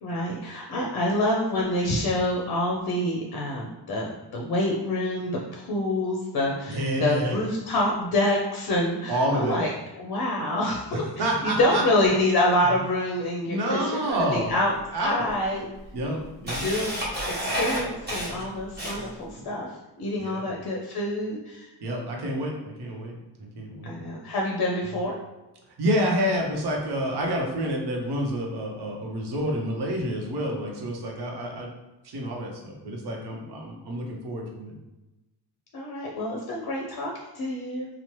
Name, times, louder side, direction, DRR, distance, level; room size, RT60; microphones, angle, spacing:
voice 1, 0.0-9.7 10.0-14.7 15.0-15.7 16.4-16.9 17.2-19.7 20.0-21.7 23.8-25.1 35.7-37.9, left 1 dB, 55° left, -1 dB, 0.5 m, -27 dB
voice 2, 6.7-7.4 9.1-9.7 10.9-11.8 13.4-14.6 14.9-15.3 15.9-16.6 20.2-20.4 21.8-23.1 23.6-24.0 25.8-31.7 32.0-34.7, equal, 65° right, 0 dB, 0.8 m, -28 dB
Camera, 14.3-14.4 15.3-15.4 15.8-19.3, equal, 25° right, 1.0 m, -30 dB
2.9 x 2.0 x 3.0 m, 1.0 s
cardioid pair, 125°, 43 cm